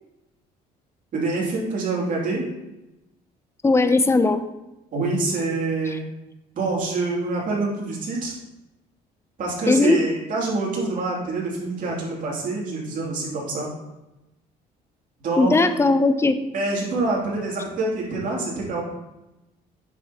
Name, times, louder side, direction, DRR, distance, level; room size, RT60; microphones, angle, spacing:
voice 1, 1.1-2.5 4.9-6.1 6.5-8.3 9.4-13.7 15.2-15.8 16.5-18.8, right 3 dB, 50° right, -4 dB, 2.9 m, -26 dB
voice 2, 3.6-4.5 9.7-10.0 15.4-16.4, left 3 dB, 15° left, 10 dB, 0.6 m, -18 dB
8.9 x 6.3 x 3.0 m, 0.97 s
cardioid pair, 110°, 17 cm